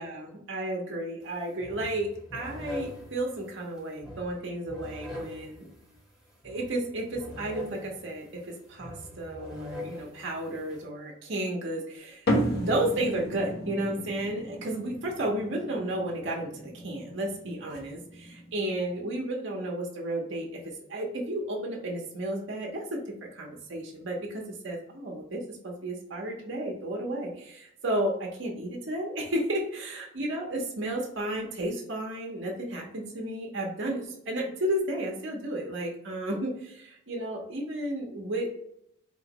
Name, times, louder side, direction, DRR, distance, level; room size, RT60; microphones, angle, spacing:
voice 1, 0.0-5.7 6.4-20.6 20.9-23.0 23.3-38.5, right 1 dB, 55° right, -1 dB, 0.8 m, -33 dB
sound 1, 1.2-1.3 1.6-10.8, left 2 dB, ahead, 1.0 m, -43 dB
sound 2, 12.3-19.0, equal, 50° left, 1.0 m, -34 dB
4.4 x 3.1 x 2.9 m, 0.75 s
head